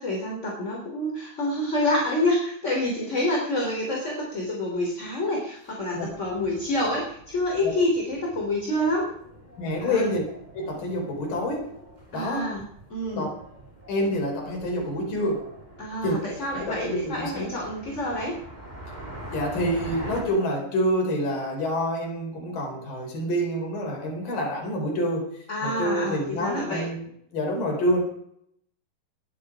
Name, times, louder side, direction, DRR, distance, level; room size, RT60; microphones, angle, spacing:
voice 1, 0.0-9.1 9.8-10.1 12.1-12.6 12.9-13.3 15.8-18.4 25.5-26.9, left 1 dB, 15° left, -1 dB, 3.2 m, -27 dB
sound 1, 6.0-20.2, right 1 dB, 10° right, 2.7 m, -44 dB
voice 2, 9.6-10.2 10.5-11.8 12.1-12.5 13.1-13.3 13.9-15.5 16.0-16.2 16.5-17.6 19.3-25.3 25.6-27.0 27.3-28.0, equal, 50° left, 0 dB, 5.8 m, -27 dB
20.5 x 11.0 x 5.0 m, 0.69 s
omnidirectional pair, 5.2 m